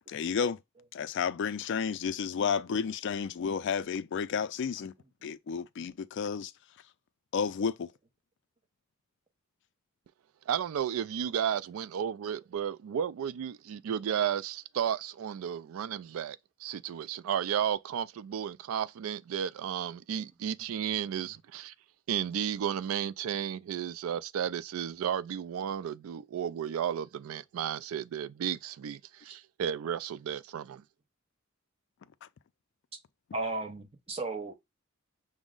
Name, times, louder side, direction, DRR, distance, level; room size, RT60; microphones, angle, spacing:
voice 1, 0.1-0.6 0.9-4.9 5.2-6.5 7.3-7.9, left 6 dB, 60° left, 0.4 m, -31 dB
voice 2, 10.5-21.7 22.1-30.8, right 9 dB, 75° right, 0.3 m, -33 dB
voice 3, 33.3-34.5, right 3 dB, 30° right, 0.8 m, -35 dB
6.1 x 2.1 x 3.7 m
head